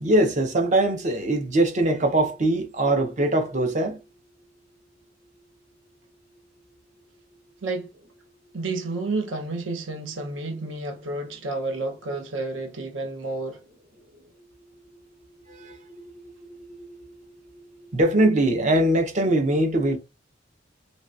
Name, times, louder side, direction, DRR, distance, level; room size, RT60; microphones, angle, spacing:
voice 1, 0.0-4.0 15.5-15.8 17.9-20.0, right 1 dB, 40° right, 0.6 m, -22 dB
voice 2, 8.5-13.6, right 2 dB, 80° right, 0.7 m, -30 dB
3.1 x 2.8 x 2.4 m
head